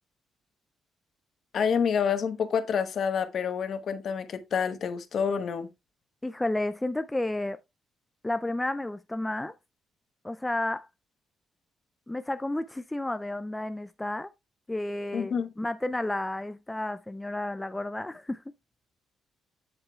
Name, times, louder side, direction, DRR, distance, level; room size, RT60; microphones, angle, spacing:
voice 1, 1.5-5.7 15.1-15.5, left 7 dB, 50° left, 1.0 m, -28 dB
voice 2, 6.2-7.6 8.2-9.5 10.2-10.9 12.1-14.3 14.7-18.4, left 1 dB, 10° left, 0.3 m, -31 dB
8.7 x 7.6 x 2.3 m
cardioid pair, 145°, 0 cm